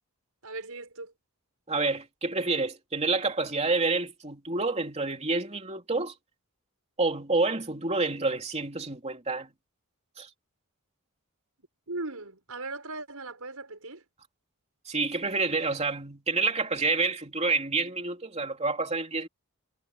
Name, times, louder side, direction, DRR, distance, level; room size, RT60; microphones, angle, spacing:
voice 1, 0.4-1.1 11.9-14.0, right 2 dB, 75° right, 6.1 m, -38 dB
voice 2, 1.7-6.1 7.0-9.5 10.2-10.3 14.9-19.3, right 3 dB, 30° right, 3.0 m, -28 dB
head